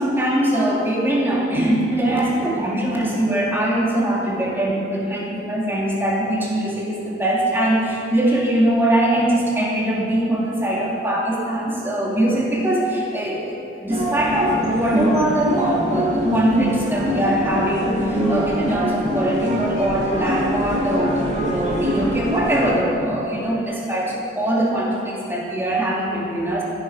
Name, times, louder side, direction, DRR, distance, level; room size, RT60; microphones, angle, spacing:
voice 1, 0.0-26.6, right 1 dB, 10° right, -4 dB, 2.4 m, -22 dB
sound 1, 13.9-22.7, equal, 40° right, 2.2 m, -23 dB
14.5 x 9.5 x 5.6 m, 2.7 s
head